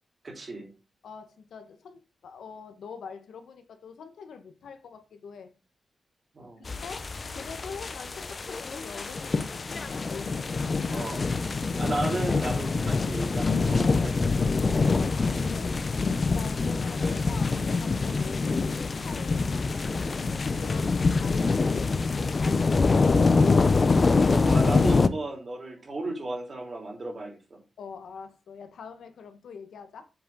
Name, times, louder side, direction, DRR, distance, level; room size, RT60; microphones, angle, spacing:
voice 1, 0.2-0.7 6.3-6.6 10.9-11.2 11.8-14.5 17.0-17.2 24.3-27.6, right 2 dB, 30° right, 3.6 m, -34 dB
voice 2, 1.0-5.5 6.6-10.4 14.8-15.8 16.3-20.0 20.5-23.4 27.8-30.1, left 6 dB, 85° left, 1.4 m, -44 dB
sound 1, 6.7-25.1, left 4 dB, 30° left, 0.6 m, -25 dB
7.8 x 6.7 x 3.9 m
wide cardioid pair, 175°, 0 cm